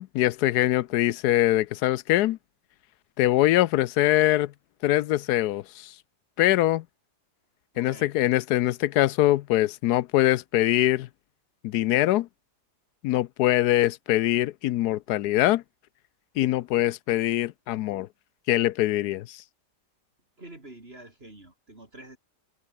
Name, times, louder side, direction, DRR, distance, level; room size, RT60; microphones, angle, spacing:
voice 1, 0.0-2.4 3.2-4.5 4.8-5.9 6.4-6.8 7.8-11.1 11.6-12.3 13.0-15.6 16.4-18.1 18.5-19.4, left 15 dB, 75° left, 1.1 m, -23 dB
voice 2, 7.7-8.1 20.4-22.2, right 2 dB, 35° right, 4.3 m, -47 dB
omnidirectional pair, 1.7 m